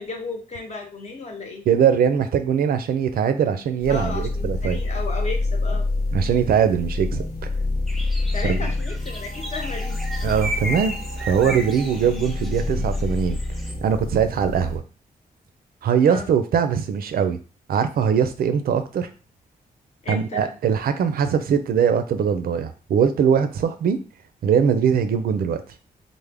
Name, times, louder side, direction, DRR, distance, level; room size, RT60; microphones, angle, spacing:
voice 1, 0.0-1.6 3.9-5.9 8.3-10.0 16.1-16.2 20.0-20.5, left 3 dB, 50° left, 3 dB, 0.8 m, -33 dB
voice 2, 1.7-4.8 6.1-7.3 8.4-8.7 10.2-13.4 13.8-14.8 15.8-17.4 17.7-19.1 20.1-24.0 24.4-25.6, right 7 dB, 80° right, 9 dB, 0.4 m, -21 dB
sound 1, 3.8-14.8, left 2 dB, 90° left, 0.9 m, -27 dB
sound 2, 7.9-13.7, equal, ahead, 0.5 m, -35 dB
3.3 x 2.1 x 3.4 m, 0.35 s
wide cardioid pair, 110°, 15 cm